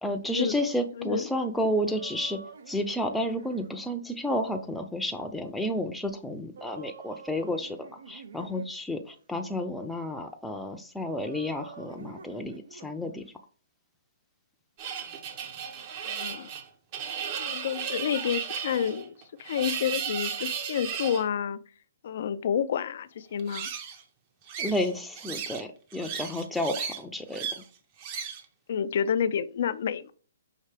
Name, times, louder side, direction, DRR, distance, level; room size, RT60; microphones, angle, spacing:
voice 1, 0.0-2.4 2.7-13.2 24.6-27.6, left 1 dB, 5° left, 0.5 m, -31 dB
sound 1, 1.8-3.7 6.6-8.8 11.2-12.9, right 5 dB, 70° right, 0.5 m, -47 dB
sound 2, 14.8-21.2 23.4-24.0 24.5-25.6 25.9-27.0 27.3-27.6 28.0-28.4, right 7 dB, 35° right, 0.7 m, -35 dB
voice 2, 16.1-16.5 17.4-21.6 22.0-23.7 28.7-30.1, left 8 dB, 55° left, 0.4 m, -29 dB
5.6 x 2.8 x 3.3 m
hypercardioid pair, 145°, 0 cm